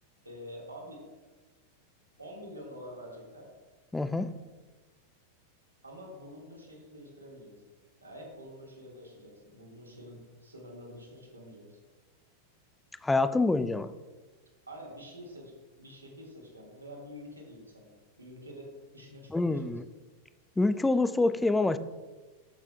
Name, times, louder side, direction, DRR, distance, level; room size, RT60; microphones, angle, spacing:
voice 1, 0.2-1.0 2.2-3.5 5.8-7.6 8.0-11.8 14.7-15.5 15.8-19.7, equal, 80° right, -1 dB, 1.7 m, -47 dB
voice 2, 3.9-4.3 13.0-13.9 19.3-19.8 20.6-21.8, left 2 dB, 10° left, 13 dB, 0.3 m, -26 dB
13.0 x 5.8 x 2.2 m, 1.3 s
figure-of-eight pair, 90°, 0 cm